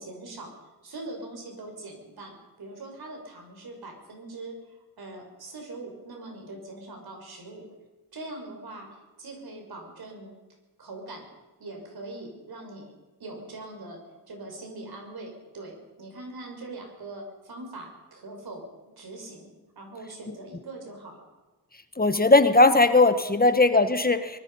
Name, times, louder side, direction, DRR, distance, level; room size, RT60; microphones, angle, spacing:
voice 1, 0.0-4.6 5.0-7.7 8.1-10.3 10.8-11.3 11.6-12.9 13.2-14.0 14.3-18.7 19.0-19.5 19.8-21.3, right 2 dB, 75° right, 2 dB, 6.0 m, -42 dB
voice 2, 22.0-24.4, left 2 dB, 25° left, 9 dB, 1.4 m, -19 dB
23.5 x 20.5 x 5.6 m, 1.2 s
wide cardioid pair, 95°, 37 cm